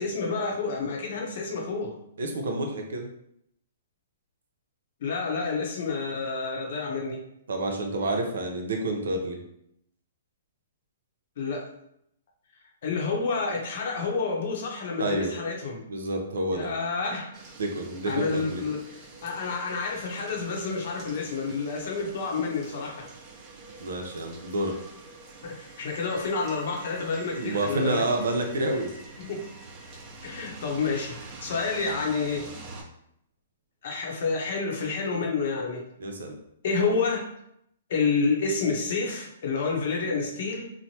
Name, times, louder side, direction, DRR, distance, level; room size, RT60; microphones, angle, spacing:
voice 1, 0.0-1.9 5.0-7.2 11.4-11.7 12.8-15.8 16.5-17.4 18.0-23.1 25.4-28.1 29.2-29.5 30.2-32.5 33.8-35.8 36.6-37.3 37.9-40.6, left 4 dB, 60° left, 0 dB, 0.7 m, -29 dB
voice 2, 2.2-3.1 7.5-9.4 15.0-15.3 15.9-16.7 17.6-18.6 23.8-24.8 27.4-28.9 36.0-36.4, right 2 dB, 80° right, 3 dB, 0.6 m, -29 dB
sound 1, 17.3-32.8, right 3 dB, 25° right, 0.8 m, -46 dB
3.0 x 2.1 x 2.8 m, 0.75 s
hypercardioid pair, 150°, 0 cm